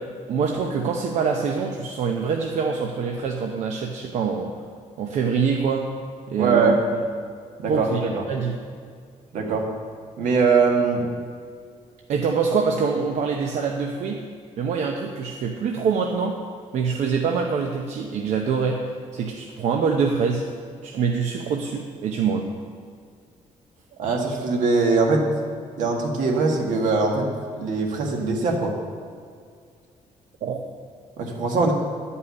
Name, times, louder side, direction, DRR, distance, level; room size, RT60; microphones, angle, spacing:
voice 1, 0.3-4.5 5.0-5.9 6.3-7.0 7.7-8.5 12.1-14.2 14.6-16.4 16.7-18.9 19.1-20.4 20.8-22.5 30.4-30.6, right 5 dB, 60° right, 2 dB, 0.8 m, -25 dB
voice 2, 6.4-6.7 7.6-8.2 9.3-9.6 10.2-11.0 24.0-25.3 25.8-27.3 27.6-28.8 31.2-31.7, right 4 dB, 80° right, 1 dB, 1.8 m, -21 dB
11.0 x 5.6 x 8.3 m, 2.2 s
cardioid pair, 175°, 13 cm